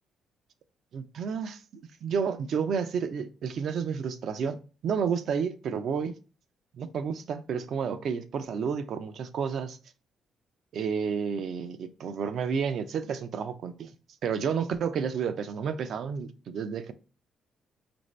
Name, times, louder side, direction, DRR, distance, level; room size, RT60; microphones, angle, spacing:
voice 1, 0.9-1.6 2.0-6.2 6.7-9.8 10.7-13.9 14.2-16.9, right 6 dB, 65° right, 0.4 m, -31 dB
5.1 x 2.6 x 3.2 m
cardioid pair, 90°, 0 cm